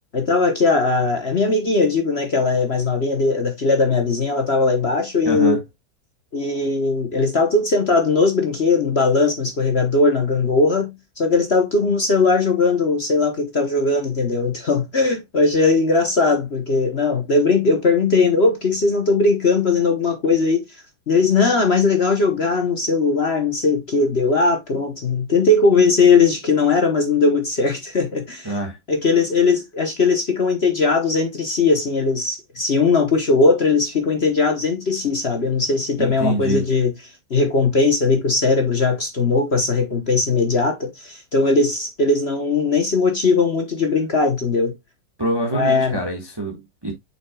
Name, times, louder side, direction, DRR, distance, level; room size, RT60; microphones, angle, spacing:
voice 1, 0.1-5.6 6.3-10.9 11.2-20.6 21.1-28.5 28.9-36.9 37.3-44.7 45.5-46.0, left 3 dB, 40° left, 1.1 m, -19 dB
voice 2, 5.2-5.6 28.4-28.8 36.0-36.6 45.2-46.9, right 2 dB, 15° right, 1.5 m, -25 dB
7.6 x 6.2 x 2.3 m
omnidirectional pair, 2.1 m